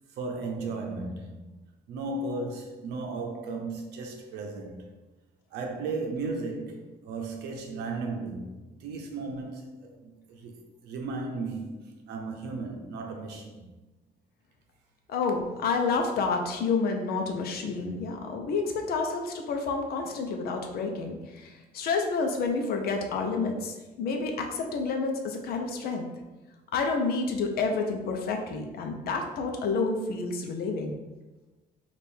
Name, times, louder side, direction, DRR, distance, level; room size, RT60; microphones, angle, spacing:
voice 1, 0.1-1.5 1.9-4.8 5.5-8.5 8.8-13.6, right 3 dB, 80° right, 0.7 m, -35 dB
voice 2, 15.1-26.0 26.7-31.0, left 4 dB, 65° left, 0.7 m, -29 dB
3.4 x 2.5 x 4.3 m
cardioid pair, 110°, 17 cm